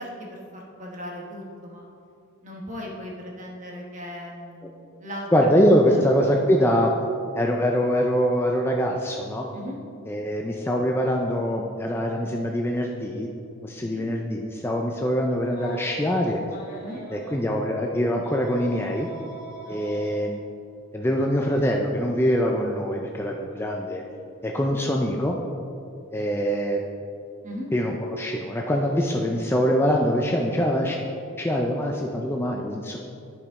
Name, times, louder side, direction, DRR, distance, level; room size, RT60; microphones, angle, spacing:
voice 1, 0.0-1.8 2.4-5.5 5.9-6.0 6.3-6.5 9.5-9.8 13.8-14.1 16.8-17.0 19.6-20.1 27.4-27.7, equal, 35° right, -1 dB, 1.2 m, -38 dB
voice 2, 5.3-6.9 7.3-9.5 10.1-13.3 13.6-16.4 17.1-19.1 19.7-20.4 20.9-24.0 24.4-25.4 26.1-26.8 27.7-31.0 31.4-33.0, equal, 10° left, 1 dB, 0.3 m, -23 dB
Telephone, 15.5-17.4 18.2-20.1 21.5-21.6 23.2-23.4, right 1 dB, 40° left, 1.5 m, -42 dB
11.5 x 5.1 x 3.6 m, 2.6 s
head